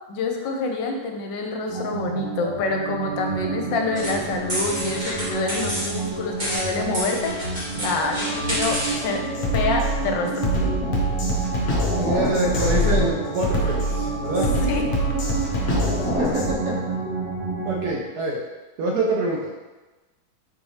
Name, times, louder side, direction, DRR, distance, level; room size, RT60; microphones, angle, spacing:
voice 1, 0.1-9.2 9.5-10.5 14.6-14.8, left 3 dB, 80° left, 3 dB, 1.2 m, -27 dB
sound 1, 1.7-17.9, right 3 dB, 90° right, 2.3 m, -30 dB
sound 2, 4.0-9.2, equal, 30° right, 1.4 m, -30 dB
Drum kit, 8.7-8.9 9.4-16.5, equal, 55° left, 0.8 m, -24 dB
voice 2, 12.0-14.5 16.2-16.8 17.6-18.4 18.8-19.5, right 2 dB, 70° right, -3 dB, 1.0 m, -25 dB
4.6 x 3.2 x 2.7 m, 1.2 s
omnidirectional pair, 2.0 m